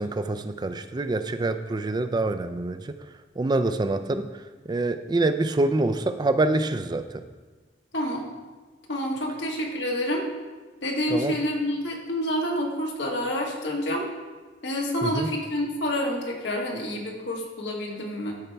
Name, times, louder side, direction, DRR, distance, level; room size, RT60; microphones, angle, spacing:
voice 1, 0.0-3.0 3.4-4.3 4.7-7.2 11.1-11.4 15.0-15.3, right 2 dB, 25° right, 10 dB, 0.4 m, -26 dB
voice 2, 7.9-8.3 8.9-10.2 10.8-14.1 14.6-18.3, left 1 dB, 80° left, -1 dB, 1.4 m, -28 dB
12.5 x 4.4 x 3.4 m, 1.3 s
head